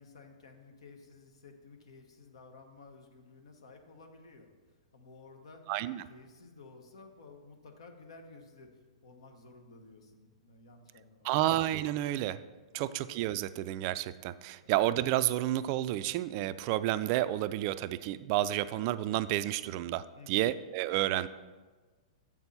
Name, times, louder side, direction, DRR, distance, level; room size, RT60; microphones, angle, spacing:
voice 1, 0.0-4.5 4.9-5.6 6.1-8.7 9.0-11.4 12.8-13.0 14.6-14.7 20.1-20.5, left 3 dB, 70° left, 4 dB, 1.2 m, -54 dB
voice 2, 5.7-6.0 11.2-12.4 12.7-21.3, right 14 dB, 45° right, 14 dB, 0.3 m, -30 dB
7.3 x 6.0 x 5.5 m, 1.3 s
figure-of-eight pair, 110°, 3 cm